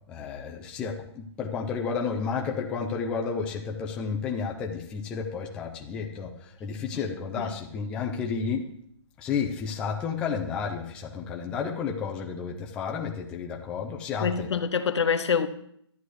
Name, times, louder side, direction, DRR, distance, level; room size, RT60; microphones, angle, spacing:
voice 1, 0.1-8.7 9.2-14.5, left 6 dB, 5° left, 0.4 m, -31 dB
voice 2, 14.2-15.5, left 6 dB, 70° left, 1.0 m, -25 dB
12.5 x 9.3 x 3.2 m
hypercardioid pair, 165°, 15 cm